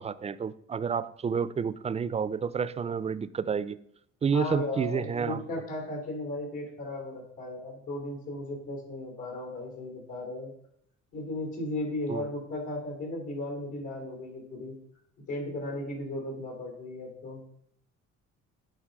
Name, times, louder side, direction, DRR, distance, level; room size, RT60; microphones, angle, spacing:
voice 1, 0.0-3.8 4.2-5.4 12.1-12.2, right 6 dB, 20° right, 16 dB, 0.3 m, -30 dB
voice 2, 4.3-10.5 11.1-14.8 15.3-17.4, left 1 dB, 85° left, 2 dB, 3.1 m, -36 dB
9.0 x 3.9 x 5.2 m, 0.72 s
cardioid pair, 90°, 30 cm